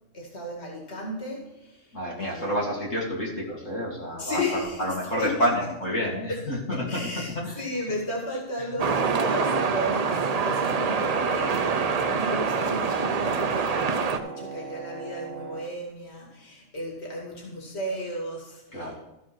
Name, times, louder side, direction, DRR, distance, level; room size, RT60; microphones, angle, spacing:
voice 1, 0.1-2.5 4.2-4.9 5.2-5.5 6.9-18.9, left 1 dB, 60° left, -2 dB, 2.4 m, -34 dB
voice 2, 1.9-7.7 8.6-8.8 18.7-18.9, equal, 85° left, -4 dB, 2.6 m, -29 dB
sound 1, 8.8-14.2, right 5 dB, 45° right, 0.5 m, -25 dB
Wind instrument woodwind instrument, 10.4-15.7, right 5 dB, 90° right, 1.2 m, -38 dB
14.0 x 4.7 x 6.1 m, 0.91 s
omnidirectional pair, 1.3 m